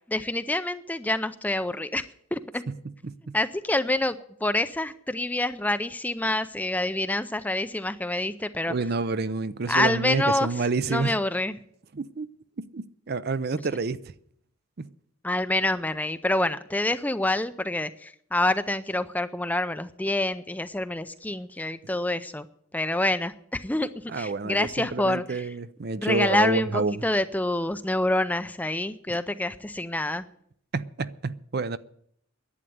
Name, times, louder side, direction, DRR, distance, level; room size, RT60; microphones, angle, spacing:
voice 1, 0.1-2.0 2.3-2.6 3.3-4.2 4.4-8.7 9.7-11.6 15.2-22.5 22.7-25.5 26.0-30.3, left 1 dB, 5° left, 0.4 m, -27 dB
voice 2, 3.0-3.3 8.7-11.2 11.9-12.3 12.6-14.0 14.8-14.9 24.1-27.0 30.7-31.8, right 3 dB, 45° right, 0.5 m, -28 dB
11.0 x 9.0 x 9.4 m
head